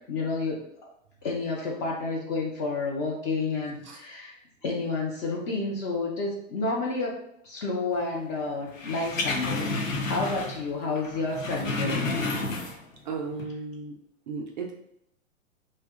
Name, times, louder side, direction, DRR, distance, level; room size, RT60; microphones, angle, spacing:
voice 1, 0.1-0.7 1.2-4.4 4.6-12.2, left 3 dB, 25° left, -2 dB, 0.4 m, -30 dB
sound 1, 8.7-10.7 11.0-13.0 13.3-13.4, left 3 dB, 75° left, 0.7 m, -30 dB
voice 2, 13.1-14.0 14.3-14.7, right 4 dB, 35° right, 1 dB, 0.4 m, -35 dB
2.6 x 2.2 x 3.5 m, 0.76 s
hypercardioid pair, 115°, 40 cm